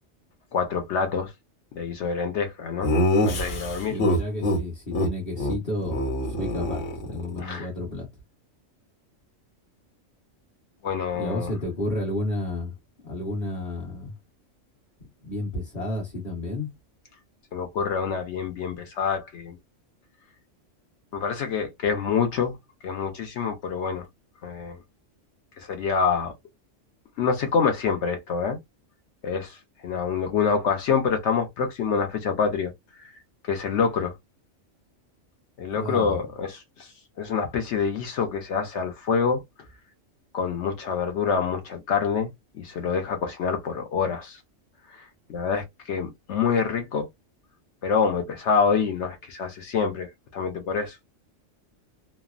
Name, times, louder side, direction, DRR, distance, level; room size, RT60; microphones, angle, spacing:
voice 1, 0.5-1.3 1.7-2.9 3.2-3.9 7.4-7.7 10.8-11.5 17.5-19.6 21.1-22.6 22.8-24.1 24.4-24.8 25.6-26.3 27.2-28.6 29.2-29.6 29.8-32.7 33.0-33.1 33.5-34.1 35.6-36.9 37.2-39.4 40.3-42.3 42.5-44.4 44.9-47.1 47.8-51.0, left 6 dB, 70° left, 0.9 m, -26 dB
Laughter, 2.8-4.6 4.9-5.1 5.4-5.6 5.8-7.4, left 1 dB, 85° left, 1.3 m, -24 dB
voice 2, 3.9-6.0 6.3-8.1 11.2-12.7 13.0-14.1 15.2-16.7 35.7-36.2, left 1 dB, 40° left, 1.2 m, -31 dB
3.1 x 2.0 x 2.4 m
omnidirectional pair, 1.3 m